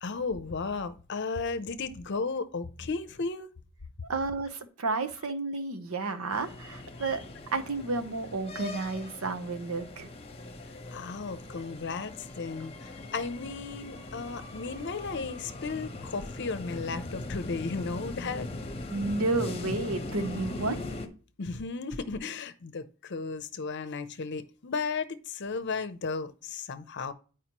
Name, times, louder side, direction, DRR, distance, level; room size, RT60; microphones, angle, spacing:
voice 1, 0.0-3.5 10.9-18.5 21.4-27.1, left 4 dB, 55° left, 0.6 m, -34 dB
voice 2, 4.1-7.2 7.5-10.1 18.9-20.8, right 3 dB, 80° right, 0.8 m, -31 dB
sound 1, 6.3-21.1, left 2 dB, 30° left, 0.9 m, -40 dB
9.6 x 4.9 x 3.0 m
head